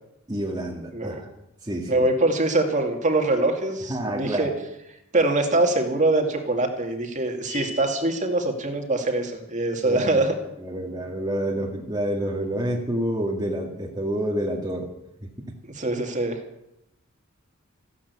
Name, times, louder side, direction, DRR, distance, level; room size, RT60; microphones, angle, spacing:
voice 1, 0.3-1.3 1.6-2.0 3.9-4.5 9.8-10.2 10.6-14.9, right 1 dB, 20° right, -1 dB, 1.9 m, -28 dB
voice 2, 1.9-4.5 5.1-10.3 15.7-16.4, right 2 dB, 35° right, 3 dB, 2.3 m, -23 dB
sound 1, 7.5-8.3, left 2 dB, 40° left, 2.5 m, -37 dB
15.0 x 11.0 x 8.3 m, 0.84 s
head